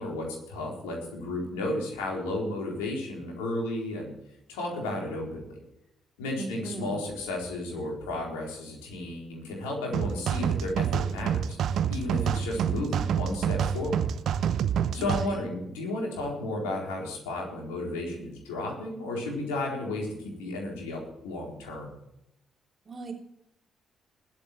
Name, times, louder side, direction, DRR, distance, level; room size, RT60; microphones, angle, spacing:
voice 1, 0.0-4.1 4.5-5.4 6.2-14.0 14.9-21.9, left 2 dB, 80° left, -1 dB, 4.0 m, -33 dB
voice 2, 6.3-7.1 14.9-15.5 22.8-23.1, right 3 dB, 45° right, 2 dB, 3.2 m, -39 dB
sound 1, 9.9-15.3, right 8 dB, 65° right, 0.7 m, -27 dB
21.0 x 8.0 x 4.5 m, 0.82 s
hypercardioid pair, 40°, 0 cm